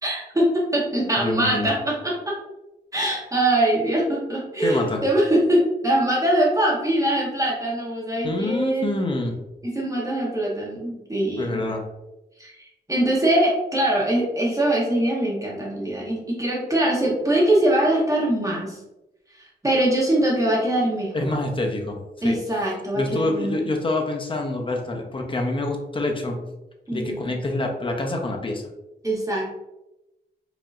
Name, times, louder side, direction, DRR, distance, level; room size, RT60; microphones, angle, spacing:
voice 1, 0.0-2.1 2.9-9.0 9.6-11.6 12.4-18.8 19.4-21.3 22.2-23.7 26.9-27.2 29.0-29.4, right 1 dB, 20° right, -4 dB, 1.0 m, -22 dB
voice 2, 1.2-1.7 4.6-5.0 8.2-9.3 11.4-11.8 21.1-22.0 22.2-22.4 23.0-26.4 26.9-28.6, left 2 dB, 30° left, 1 dB, 0.7 m, -26 dB
4.9 x 2.7 x 2.4 m, 0.97 s
wide cardioid pair, 110°, 18 cm